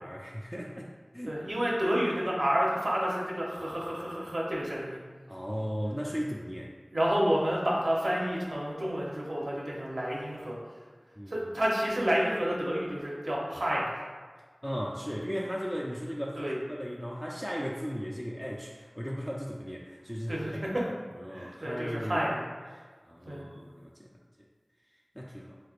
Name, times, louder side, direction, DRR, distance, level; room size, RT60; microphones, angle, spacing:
voice 1, 0.0-1.4 5.3-6.7 11.2-11.5 14.6-20.8 21.2-22.2 22.7-24.1 25.1-25.6, equal, 5° left, -3 dB, 0.3 m, -36 dB
voice 2, 1.3-5.0 6.9-10.6 11.3-13.9 16.4-16.6 20.3-20.7 21.3-22.4 23.3-23.4, equal, 85° right, -4 dB, 0.8 m, -29 dB
4.1 x 3.2 x 2.4 m, 1.5 s
wide cardioid pair, 45°, 0 cm